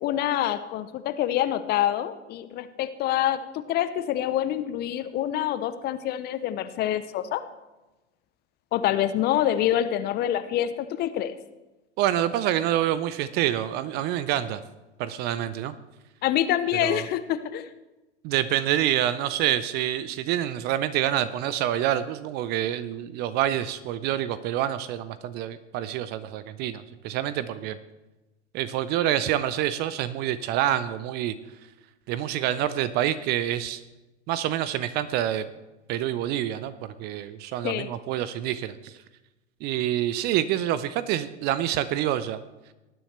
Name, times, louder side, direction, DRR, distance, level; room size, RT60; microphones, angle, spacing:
voice 1, 0.0-7.4 8.7-11.4 16.2-17.7 37.6-37.9, left 12 dB, 25° left, 13 dB, 0.6 m, -26 dB
voice 2, 12.0-14.6 15.0-15.7 16.8-17.1 18.2-27.8 28.5-31.3 32.1-33.8 34.3-35.4 35.9-39.0 39.6-42.4, right 12 dB, 30° right, 14 dB, 0.5 m, -27 dB
19.0 x 9.9 x 3.3 m, 1.1 s
figure-of-eight pair, 95°, 36 cm